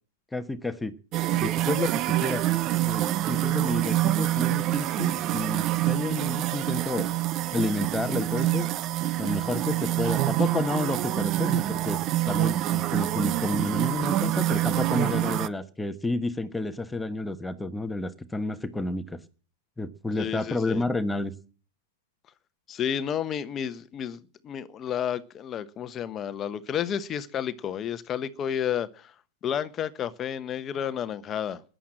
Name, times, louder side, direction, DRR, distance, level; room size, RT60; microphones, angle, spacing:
voice 1, 0.3-0.9 1.4-2.4 2.8-7.1 7.5-8.7 9.2-12.0 12.3-19.2 19.8-21.3, left 2 dB, 5° left, 1.2 m, -30 dB
sound 1, 1.1-15.5, right 15 dB, 35° right, 0.7 m, -26 dB
voice 2, 20.2-20.8 22.7-29.1 29.4-31.6, left 9 dB, 25° left, 1.0 m, -31 dB
14.5 x 10.0 x 7.7 m
hypercardioid pair, 110°, 0 cm